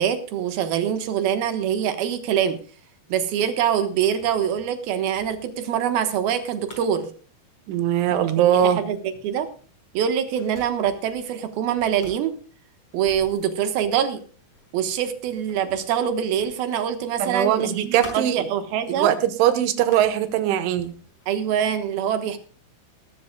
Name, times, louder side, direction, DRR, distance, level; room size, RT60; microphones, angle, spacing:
voice 1, 0.0-2.6 3.1-7.1 8.4-9.5 9.9-12.3 12.9-14.2 14.7-19.1 21.3-22.4, right 9 dB, 65° right, 9 dB, 2.7 m, -24 dB
sound 1, 4.0-7.1 7.8-8.0 8.3-8.7 9.1-11.3 11.8-16.7 16.9-18.6 19.0-19.1 19.7-20.3 20.7-21.8, left 3 dB, 35° left, 5.2 m, -47 dB
voice 2, 7.7-8.8 17.2-18.4 18.9-20.9, right 10 dB, 90° right, 11 dB, 3.6 m, -21 dB
20.0 x 13.5 x 2.3 m, 0.39 s
omnidirectional pair, 5.4 m